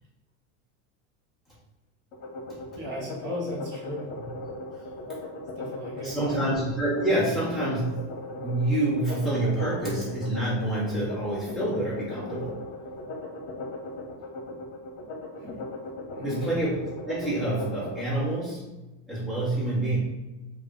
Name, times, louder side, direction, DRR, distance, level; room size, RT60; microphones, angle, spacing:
sound 1, 2.1-18.1, left 2 dB, 80° left, 0.8 m, -38 dB
voice 1, 2.7-4.1 5.6-6.4 15.4-15.6 16.1-16.5, left 1 dB, 30° right, -5 dB, 0.9 m, -35 dB
voice 2, 6.0-8.1 8.4-12.6 16.2-16.8 17.0-18.7 19.1-20.0, right 1 dB, ahead, -10 dB, 0.7 m, -27 dB
2.4 x 2.0 x 3.5 m, 1.1 s
cardioid pair, 180°, 36 cm